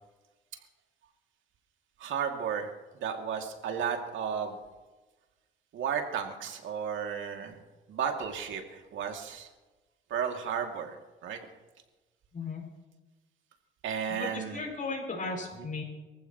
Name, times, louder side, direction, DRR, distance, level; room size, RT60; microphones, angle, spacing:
voice 1, 2.0-2.7 3.0-4.6 5.7-7.6 7.9-9.5 10.1-11.0 11.2-11.4 13.8-14.6 15.6-15.7, right 7 dB, 80° right, 3 dB, 2.6 m, -33 dB
voice 2, 14.1-15.8, left 3 dB, 40° left, -1 dB, 6.4 m, -36 dB
24.5 x 15.0 x 3.1 m, 1.2 s
cardioid pair, 90°, 20 cm